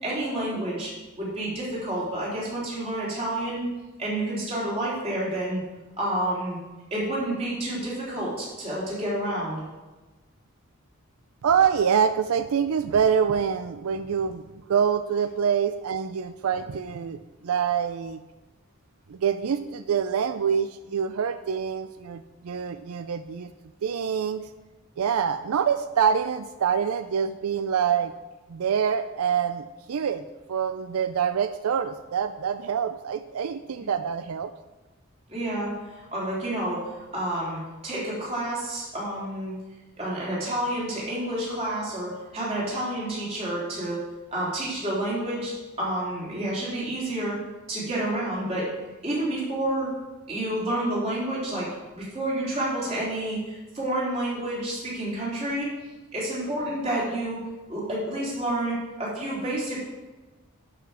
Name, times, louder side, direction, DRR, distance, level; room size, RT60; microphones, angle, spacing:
voice 1, 0.0-3.7 4.0-5.6 6.0-6.6 6.9-9.6 33.8-33.9 35.3-35.7 36.1-39.5 40.0-44.0 44.3-47.4 47.7-48.7 49.0-49.9 50.3-51.7 51.9-55.7 56.1-57.4 57.7-59.8, right 1 dB, 30° right, -7 dB, 3.5 m, -29 dB
voice 2, 11.4-14.4 14.7-18.2 19.2-23.5 23.8-24.4 25.0-28.1 28.5-30.2 30.5-34.5, right 7 dB, 85° right, 10 dB, 0.4 m, -25 dB
11.5 x 5.8 x 4.9 m, 1.2 s
head